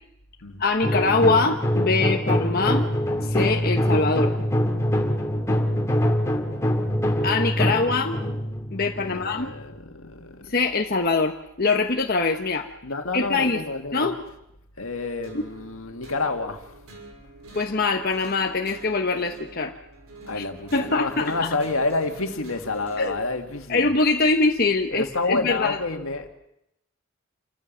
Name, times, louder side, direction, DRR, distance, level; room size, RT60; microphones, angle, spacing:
voice 1, 0.6-2.9 3.2-4.3 7.2-8.2 8.7-9.5 10.5-12.7 13.1-13.6 13.9-14.2 15.3-15.4 17.5-19.7 20.3-20.4 20.7-21.5 23.0-23.1 23.7-25.8, left 3 dB, 45° left, 1.1 m, -23 dB
sound 1, 0.8-9.6, equal, 15° left, 2.4 m, -24 dB
voice 2, 9.0-10.5 12.8-14.1 14.8-16.7 20.3-23.9 24.9-26.3, left 3 dB, 75° left, 2.1 m, -29 dB
sound 2, 15.2-23.2, right 2 dB, 90° right, 5.9 m, -45 dB
28.0 x 14.5 x 7.3 m
head